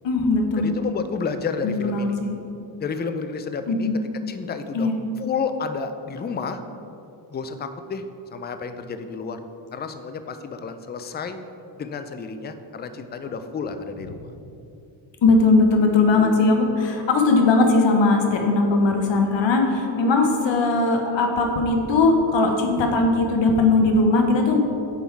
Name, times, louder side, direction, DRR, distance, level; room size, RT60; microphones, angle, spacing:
voice 1, 0.0-0.8 1.6-2.1 3.7-4.0 4.7-5.0 15.2-24.6, left 3 dB, 60° left, 3 dB, 1.1 m, -19 dB
voice 2, 0.6-2.2 2.8-3.9 4.3-4.9 5.2-6.6 7.3-8.0 8.3-9.4 9.7-11.4 11.7-14.3, left 5 dB, 20° left, 9 dB, 0.4 m, -31 dB
8.2 x 3.6 x 4.6 m, 2.7 s
cardioid pair, 75°, 50 cm